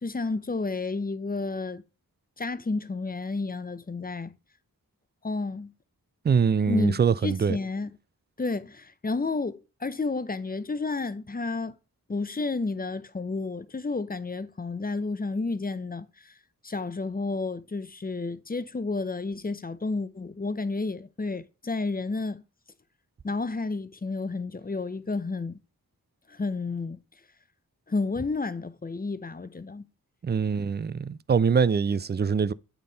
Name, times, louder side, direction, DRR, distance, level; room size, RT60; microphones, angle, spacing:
voice 1, 0.0-1.8 2.4-4.4 5.2-5.7 6.7-7.9 8.4-11.8 12.1-16.3 16.6-22.4 23.2-25.6 26.3-27.0 27.9-29.9, left 3 dB, 25° left, 0.6 m, -31 dB
voice 2, 6.2-7.6 30.2-32.5, right 6 dB, 30° right, 0.4 m, -23 dB
8.6 x 3.7 x 3.9 m
cardioid pair, 50°, 37 cm